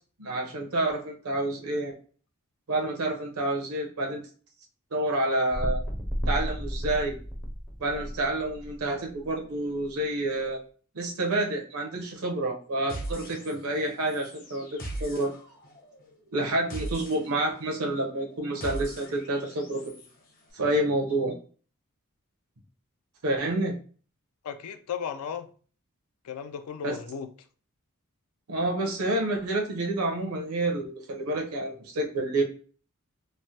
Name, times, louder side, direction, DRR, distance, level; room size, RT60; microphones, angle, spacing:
voice 1, 0.2-1.9 2.7-4.2 4.9-5.8 6.3-7.1 7.8-10.6 10.9-15.3 16.3-20.0 20.5-21.3 23.2-23.8 26.8-27.0 28.5-32.4, right 1 dB, 85° right, 0.8 m, -28 dB
sound 1, 5.5-9.3 9.8-9.9, equal, 5° right, 0.4 m, -33 dB
sound 2, 12.9-13.8 14.1-20.1, right 1 dB, 40° left, 0.7 m, -40 dB
voice 2, 24.4-25.5 26.2-27.3, left 7 dB, 90° left, 0.3 m, -35 dB
3.1 x 2.1 x 2.7 m
head